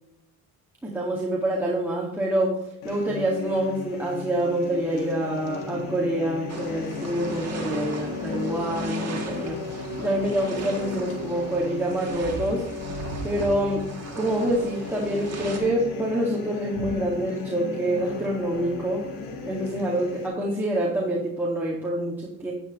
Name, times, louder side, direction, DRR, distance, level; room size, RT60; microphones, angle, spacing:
voice 1, 0.8-2.6 2.8-12.6 13.2-13.8 14.2-19.0 19.5-22.5, right 1 dB, 5° right, -5 dB, 1.9 m, -26 dB
sound 1, 2.8-20.3, left 4 dB, 90° left, 1.8 m, -35 dB
sound 2, 6.5-15.6, right 4 dB, 40° right, 2.3 m, -39 dB
sound 3, 12.1-14.6 15.3-15.6 16.0-16.1 16.7-17.0, right 4 dB, 75° right, 1.2 m, -38 dB
9.9 x 9.3 x 3.1 m, 0.82 s
cardioid pair, 85°, 37 cm